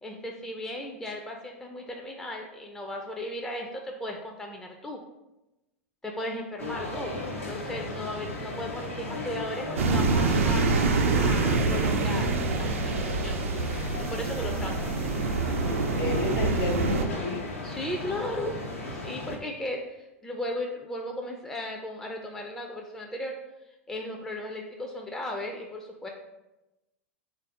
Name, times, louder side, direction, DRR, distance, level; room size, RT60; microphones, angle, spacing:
voice 1, 0.0-5.0 6.0-13.4 14.0-14.9 17.6-18.6 19.0-23.4 23.9-26.1, left 1 dB, 5° left, 1 dB, 0.4 m, -36 dB
sound 1, 6.6-19.4, left 2 dB, 85° left, 0.8 m, -36 dB
sound 2, 9.7-17.1, right 3 dB, 75° right, 0.4 m, -26 dB
voice 2, 15.6-17.4, left 3 dB, 45° left, 2 dB, 0.8 m, -32 dB
4.0 x 2.6 x 3.6 m, 0.98 s
hypercardioid pair, 90°, 7 cm